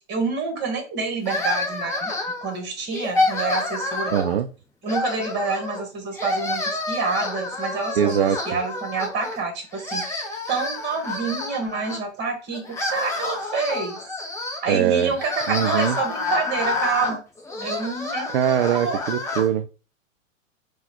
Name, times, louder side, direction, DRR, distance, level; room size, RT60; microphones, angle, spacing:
voice 1, 0.1-2.1 2.4-4.1 4.8-14.0 14.6-17.2 17.6-18.3 18.7-19.0, right 4 dB, 25° right, 1.6 m, -28 dB
sound 1, 1.2-2.5 2.9-4.4 4.8-5.8 6.1-9.4 9.7-12.0 12.5-19.5, left 2 dB, 5° left, 0.6 m, -28 dB
voice 2, 4.1-4.5 8.0-8.4 14.7-15.1 15.5-16.0 18.3-19.7, right 9 dB, 50° right, 0.5 m, -21 dB
3.9 x 2.4 x 4.3 m
figure-of-eight pair, 105°, 39 cm